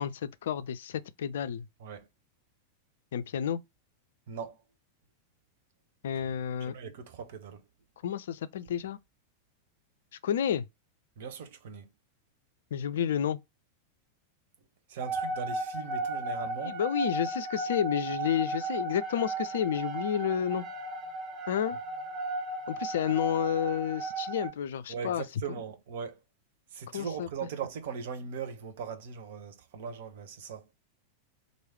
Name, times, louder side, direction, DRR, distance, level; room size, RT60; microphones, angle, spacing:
voice 1, 0.0-1.7 3.1-3.6 6.0-6.7 8.0-9.0 10.2-10.7 12.7-13.4 16.6-20.7 21.5-21.8 22.7-25.2 26.9-27.3, left 9 dB, 60° left, 0.3 m, -30 dB
voice 2, 4.3-4.6 6.1-6.3 6.7-7.6 11.2-11.9 14.9-16.8 24.9-26.2 26.7-30.7, right 6 dB, 55° right, 0.8 m, -39 dB
sound 1, 15.0-24.5, right 2 dB, 25° right, 0.8 m, -35 dB
3.1 x 2.6 x 4.4 m
figure-of-eight pair, 90°, 0 cm